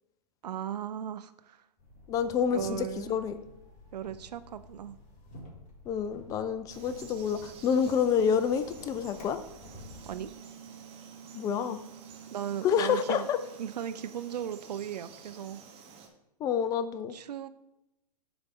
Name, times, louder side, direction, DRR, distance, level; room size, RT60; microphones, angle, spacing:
voice 1, 0.4-1.6 2.5-3.2 3.9-5.0 10.0-10.3 12.3-13.3 13.6-15.6 17.1-17.5, right 9 dB, 70° right, 12 dB, 0.5 m, -37 dB
sound 1, 1.8-10.3, left 2 dB, 35° left, 1.7 m, -52 dB
voice 2, 2.1-3.4 5.9-9.4 11.3-11.8 12.6-13.4 16.4-17.2, left 7 dB, 15° left, 11 dB, 0.3 m, -28 dB
Frog, 6.7-16.1, right 7 dB, 25° right, 1.1 m, -50 dB
7.8 x 3.4 x 6.0 m, 0.89 s
figure-of-eight pair, 110°, 21 cm